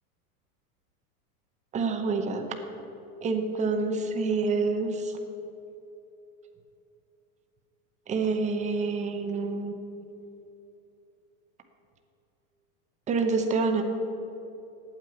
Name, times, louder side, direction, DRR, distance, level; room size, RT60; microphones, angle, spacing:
voice 1, 1.7-2.4 3.2-5.2 8.1-9.7 13.1-13.8, right 4 dB, 15° right, 5 dB, 0.8 m, -27 dB
9.0 x 7.5 x 9.1 m, 2.9 s
supercardioid pair, 140°, 45 cm